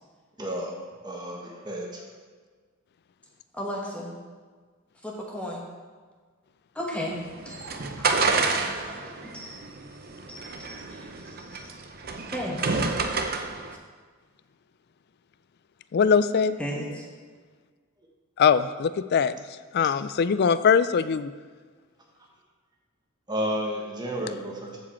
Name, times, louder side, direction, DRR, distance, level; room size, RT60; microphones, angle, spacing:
voice 1, 0.4-0.7 1.0-2.0 23.3-24.8, equal, 20° right, -1 dB, 1.2 m, -31 dB
voice 2, 3.5-4.1 5.0-5.6 6.7-7.2 7.4-9.7 10.3-11.7 12.3-12.7 16.6-17.1, equal, 5° left, -2 dB, 1.1 m, -36 dB
sound 1, 7.1-13.7, right 4 dB, 45° right, 0.7 m, -29 dB
voice 3, 15.9-16.6 18.4-19.3 19.7-21.3, left 6 dB, 50° left, 14 dB, 0.3 m, -21 dB
14.0 x 5.1 x 4.3 m, 1.5 s
head